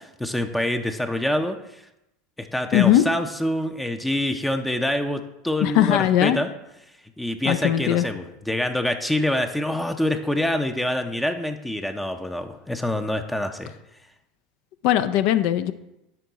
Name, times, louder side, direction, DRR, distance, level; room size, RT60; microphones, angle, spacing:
voice 1, 0.2-1.8 2.4-6.5 7.2-13.7, left 1 dB, 5° left, 6 dB, 0.6 m, -26 dB
voice 2, 2.7-3.0 5.6-6.4 7.4-8.0 14.8-15.7, left 12 dB, 60° left, 11 dB, 0.5 m, -19 dB
10.0 x 3.6 x 4.0 m, 0.89 s
hypercardioid pair, 80°, 0 cm